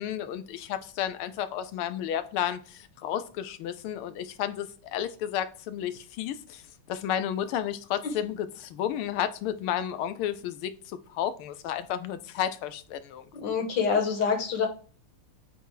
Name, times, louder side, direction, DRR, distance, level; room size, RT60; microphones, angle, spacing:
voice 1, 0.0-6.6 6.9-13.2, left 10 dB, 90° left, 1.5 m, -32 dB
voice 2, 13.4-14.7, left 6 dB, 60° left, 1.9 m, -26 dB
7.9 x 2.7 x 4.6 m
omnidirectional pair, 2.3 m